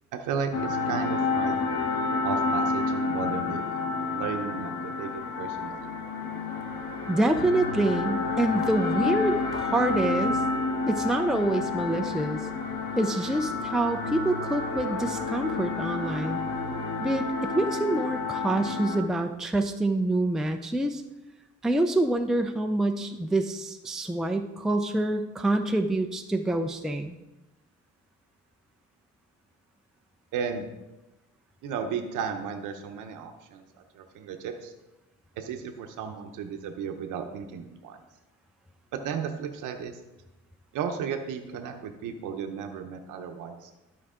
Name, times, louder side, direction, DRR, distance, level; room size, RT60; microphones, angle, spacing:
voice 1, 0.1-1.6 2.2-3.8 4.1-5.9 30.3-30.7 31.6-33.6 33.9-34.7 35.4-38.0 38.9-40.0 40.7-43.7, right 6 dB, 85° right, 5 dB, 0.8 m, -34 dB
sound 1, 0.5-19.0, left 4 dB, 70° left, 1.6 m, -30 dB
voice 2, 7.1-10.4 10.9-12.5 13.0-16.4 17.0-21.0 21.6-27.2, right 2 dB, ahead, 5 dB, 0.5 m, -26 dB
12.0 x 4.7 x 3.7 m, 0.99 s
cardioid pair, 90°, 30 cm